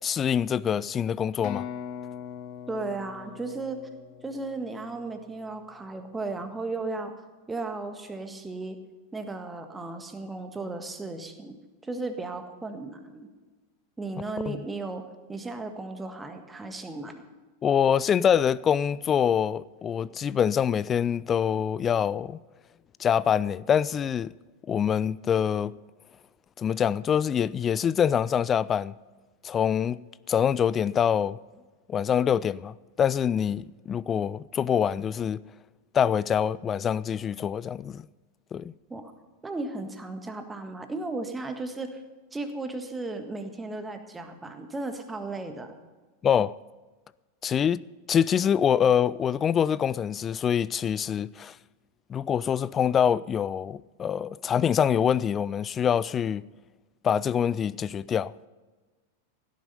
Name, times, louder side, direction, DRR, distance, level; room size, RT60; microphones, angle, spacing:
voice 1, 0.0-1.7 14.5-14.6 17.6-22.4 23.0-24.3 24.7-25.8 26.6-28.9 29.4-30.0 30.3-31.4 31.9-35.4 35.9-38.0 38.5-38.7 46.2-46.5 47.4-47.8 48.1-51.6 52.1-56.4 57.0-58.5, left 8 dB, 25° left, 0.3 m, -25 dB
sound 1, 1.4-5.2, left 8 dB, 45° left, 1.0 m, -41 dB
voice 2, 2.7-3.8 4.2-7.1 7.5-8.8 9.1-11.5 11.8-13.3 14.0-15.0 15.3-17.2 38.9-39.1 39.4-41.9 42.3-45.8, right 3 dB, 10° right, 1.6 m, -35 dB
16.5 x 10.0 x 5.5 m
figure-of-eight pair, 90°, 0 cm